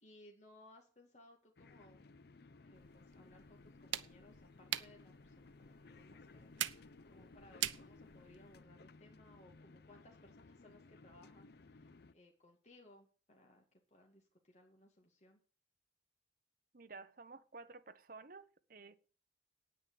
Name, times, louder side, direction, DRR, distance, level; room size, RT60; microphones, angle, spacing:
voice 1, 0.0-2.1 2.6-15.4, left 1 dB, 35° left, 2.3 m, -63 dB
sound 1, 1.6-12.1, left 3 dB, 55° left, 0.6 m, -59 dB
sound 2, 2.7-8.6, right 12 dB, 85° right, 0.8 m, -45 dB
voice 2, 16.7-19.0, right 4 dB, 50° right, 1.1 m, -53 dB
9.8 x 9.2 x 8.7 m
head